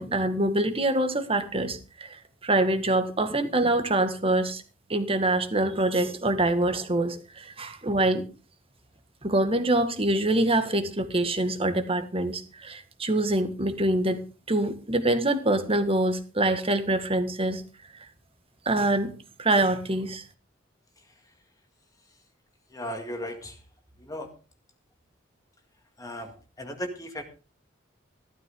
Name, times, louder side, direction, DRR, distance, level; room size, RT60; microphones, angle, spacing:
voice 1, 0.0-4.6 4.9-8.2 9.2-14.2 14.5-17.6 18.7-19.1 19.4-20.2, right 1 dB, 30° right, 9 dB, 1.9 m, -25 dB
voice 2, 22.7-23.5 24.1-24.3 26.0-26.3 26.6-27.2, equal, 20° left, 5 dB, 2.1 m, -35 dB
15.5 x 13.0 x 3.8 m, 0.34 s
head